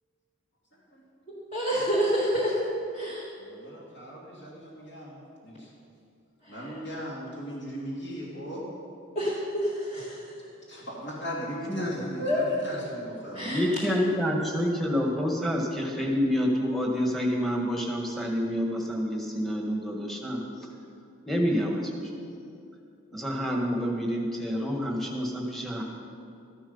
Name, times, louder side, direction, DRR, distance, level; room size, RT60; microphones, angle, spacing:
voice 1, 1.5-2.7 2.9-3.2 6.4-6.8 9.2-10.2 12.2-12.4 13.3-13.6, equal, 30° left, -7 dB, 1.9 m, -28 dB
voice 2, 3.3-5.7 6.5-8.6 10.7-13.6, equal, 55° left, -5 dB, 2.7 m, -38 dB
voice 3, 11.7-12.0 13.4-20.4 21.3-21.9 23.1-25.8, equal, ahead, -1 dB, 1.5 m, -28 dB
13.5 x 11.5 x 5.5 m, 2.5 s
head